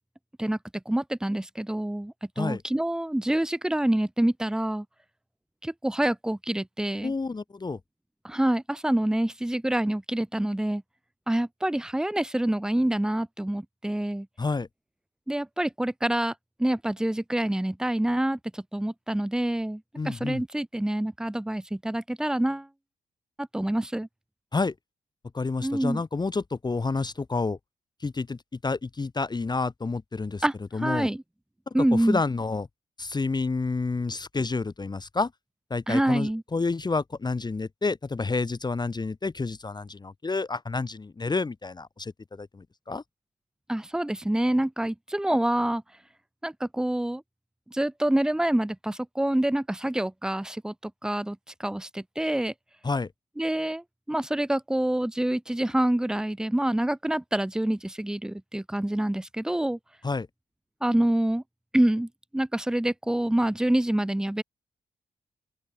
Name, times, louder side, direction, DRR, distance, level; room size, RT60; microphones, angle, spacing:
voice 1, 0.9-4.9 5.6-7.1 8.2-10.8 11.3-14.3 15.3-16.3 16.6-22.7 23.4-24.1 25.6-26.0 30.4-31.2 31.7-32.2 35.9-36.4 43.7-45.8 46.4-47.2 47.7-50.7 51.0-52.5 53.4-59.8 60.8-61.4 61.7-64.4, right 1 dB, 5° right, 0.4 m, -26 dB
voice 2, 7.0-7.8 14.4-14.7 20.0-20.4 24.5-24.7 25.3-27.6 28.0-30.4 30.7-31.1 32.1-32.7 33.0-35.3 35.7-43.0 52.8-53.1 60.0-60.3, left 3 dB, 25° left, 0.8 m, -29 dB
open air
hypercardioid pair, 40°, 17 cm